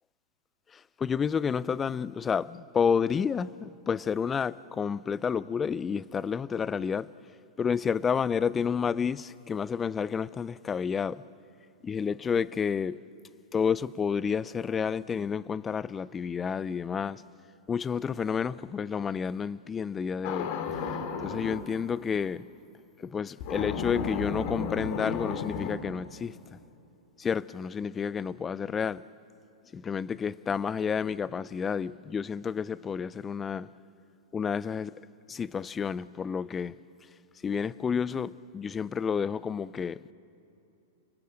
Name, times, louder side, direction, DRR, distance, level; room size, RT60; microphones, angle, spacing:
voice 1, 1.0-7.1 7.6-11.2 11.8-13.0 13.5-17.2 17.7-20.5 21.2-22.4 23.0-26.4 27.2-29.0 29.7-33.7 34.3-34.9 35.3-36.7 37.4-40.0, left 6 dB, 20° left, 0.5 m, -30 dB
sound 1, 20.2-21.7 23.4-25.8, left 6 dB, 55° left, 2.3 m, -33 dB
30.0 x 19.5 x 7.8 m
hypercardioid pair, 130°, 0 cm